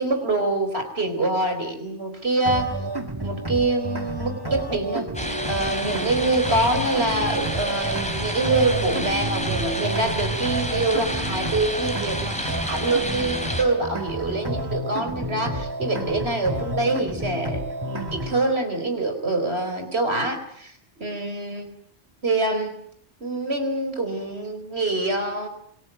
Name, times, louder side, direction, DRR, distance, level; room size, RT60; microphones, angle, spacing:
voice 1, 0.0-2.7 3.2-5.1 5.5-20.7 21.0-21.7 22.2-22.7 23.2-25.5, right 2 dB, 60° right, 6 dB, 4.6 m, -25 dB
sound 1, 2.5-18.5, right 2 dB, 20° right, 1.8 m, -30 dB
sound 2, 5.1-13.6, equal, 5° left, 3.3 m, -30 dB
27.0 x 20.0 x 9.3 m, 0.68 s
omnidirectional pair, 1.2 m